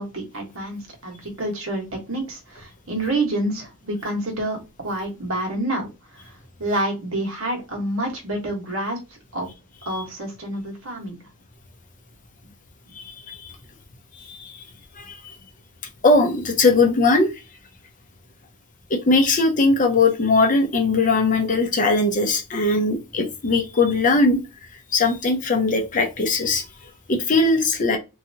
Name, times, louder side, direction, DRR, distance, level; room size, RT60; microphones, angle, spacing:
voice 1, 0.0-6.3 6.6-9.5 9.8-11.2, right 1 dB, 70° right, 1 dB, 1.2 m, -28 dB
voice 2, 13.0-13.4 14.3-14.6 15.0-15.2 16.0-17.3 18.9-24.4 24.9-26.6 27.1-28.0, left 3 dB, 40° left, 4 dB, 0.7 m, -19 dB
3.1 x 2.7 x 2.7 m, 0.27 s
head